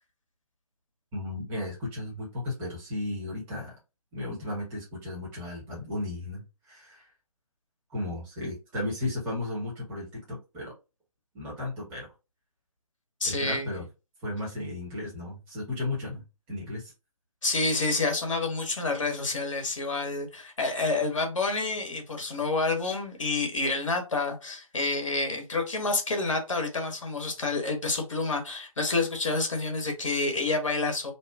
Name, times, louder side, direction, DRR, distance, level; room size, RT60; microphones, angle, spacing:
voice 1, 1.1-3.7 4.1-7.1 7.9-10.7 11.3-12.1 13.2-13.9 14.2-16.2 16.5-16.9, left 2 dB, 10° right, 1.0 m, -34 dB
voice 2, 13.2-13.8 17.4-31.1, left 3 dB, 60° left, 0.9 m, -28 dB
2.7 x 2.3 x 2.3 m
figure-of-eight pair, 145°, 19 cm